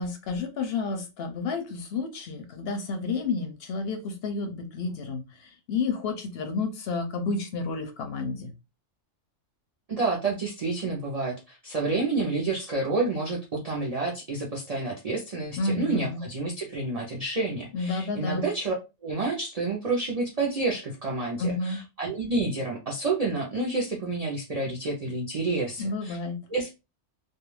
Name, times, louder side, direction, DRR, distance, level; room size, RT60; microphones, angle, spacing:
voice 1, 0.0-8.5 15.6-16.2 17.7-18.5 21.4-21.8 25.8-26.4, left 3 dB, 65° left, 6 dB, 0.7 m, -30 dB
voice 2, 9.9-18.8 19.0-26.2 26.5-26.7, right 3 dB, 55° right, -2 dB, 0.4 m, -29 dB
2.3 x 2.2 x 3.0 m, 0.27 s
omnidirectional pair, 1.3 m